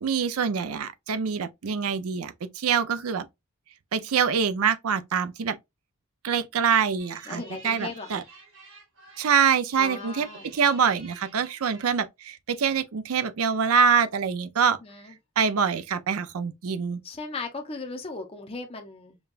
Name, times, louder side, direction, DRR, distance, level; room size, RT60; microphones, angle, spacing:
voice 1, 0.0-3.3 3.9-5.6 6.2-8.2 9.2-10.3 10.5-14.8 15.4-17.0, right 6 dB, 85° right, 0.5 m, -25 dB
sound 1, 7.0-12.0, right 3 dB, 70° right, 1.7 m, -50 dB
voice 2, 7.3-8.2 9.8-10.5 14.8-15.1 17.0-19.2, left 3 dB, 25° left, 0.5 m, -37 dB
5.2 x 2.2 x 2.4 m
head